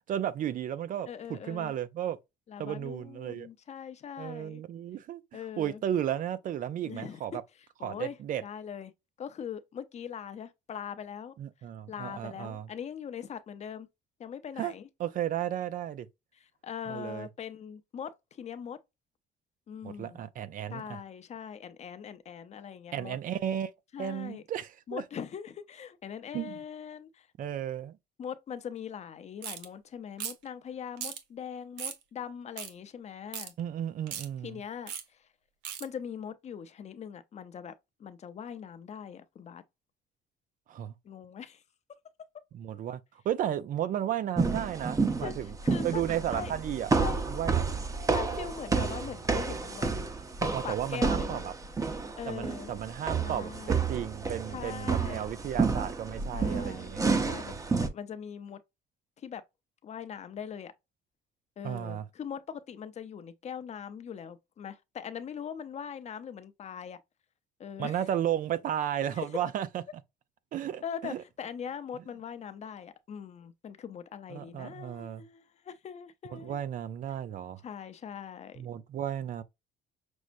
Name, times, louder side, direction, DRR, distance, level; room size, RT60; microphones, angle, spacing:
voice 1, 0.1-2.2 2.6-3.5 4.2-7.4 7.8-8.4 11.4-12.7 14.6-14.7 15.0-16.1 16.9-17.3 19.8-21.0 22.9-23.7 24.0-25.0 26.3-26.6 27.4-28.0 33.6-34.6 40.7-40.9 42.5-45.5 45.8-47.9 50.5-51.5 52.3-57.6 61.6-62.0 67.8-69.8 70.5-71.2 74.3-75.2 76.3-77.6 78.6-79.4, right 10 dB, 55° right, 0.5 m, -34 dB
voice 2, 1.1-1.7 2.5-4.6 5.3-5.8 6.8-7.2 7.8-8.2 8.4-8.9 9.2-11.3 11.9-13.9 14.2-14.9 16.3-18.8 19.7-20.2 20.7-23.2 23.9-24.4 24.9-27.3 28.2-33.5 34.4-34.9 35.8-37.7 38.0-39.6 41.0-41.6 45.2-45.3 45.6-46.0 46.3-46.5 46.9-47.2 48.1-50.1 50.4-51.4 52.2-52.7 53.2-53.9 54.5-55.3 56.3-56.9 57.2-57.5 57.8-58.6 59.2-59.4 59.8-60.7 61.6-67.0 67.6-68.0 69.0-69.3 70.8-76.6 77.6-78.6, left 8 dB, 40° left, 0.6 m, -41 dB
sound 1, 29.4-29.7 30.2-30.5 31.0-31.2 31.8-32.0 32.6-32.7 33.3-33.5 34.1-34.3 34.9-35.0 35.7-35.9, right 9 dB, 90° right, 0.9 m, -37 dB
sound 2, 44.4-57.9, right 4 dB, 20° right, 0.7 m, -30 dB
6.2 x 2.1 x 2.5 m
cardioid pair, 110°, 17 cm